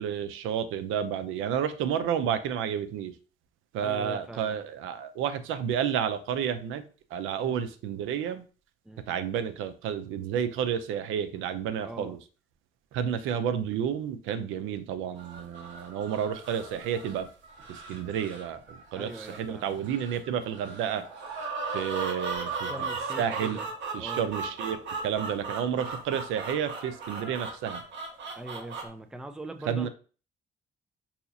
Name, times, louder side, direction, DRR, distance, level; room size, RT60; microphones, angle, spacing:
voice 1, 0.0-3.1 3.7-6.8 7.1-8.4 9.1-12.2 12.9-17.3 17.7-21.0 21.7-22.7 23.2-23.6 23.9-24.8 25.0-27.8 29.7-29.9, right 8 dB, 90° right, 0.5 m, -31 dB
voice 2, 3.8-4.6 7.4-7.6 8.9-9.1 11.8-12.2 18.9-19.8 22.6-23.7 24.0-24.3 28.3-29.9, right 1 dB, 5° right, 0.4 m, -42 dB
sound 1, 15.2-28.9, right 4 dB, 65° right, 1.2 m, -37 dB
2.8 x 2.3 x 4.0 m
cardioid pair, 90°, 20 cm